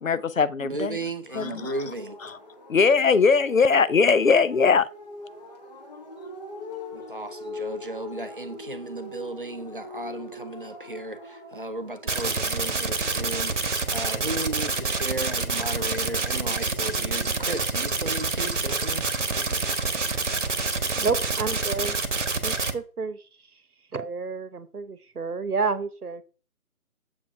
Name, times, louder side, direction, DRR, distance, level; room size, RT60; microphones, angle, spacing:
voice 1, 0.0-1.0 1.3-1.7 2.2-2.3 2.7-4.9, left 5 dB, 60° left, 0.6 m, -20 dB
voice 2, 0.6-2.2 6.9-19.1, right 2 dB, 35° right, 0.7 m, -35 dB
sound 1, 1.3-17.3, left 2 dB, 25° left, 1.4 m, -43 dB
sound 2, 12.1-22.7, right 3 dB, 50° right, 1.1 m, -27 dB
voice 3, 21.0-22.0 22.4-23.2 23.9-26.2, right 4 dB, 75° right, 1.0 m, -30 dB
7.3 x 4.6 x 4.8 m
figure-of-eight pair, 155°, 46 cm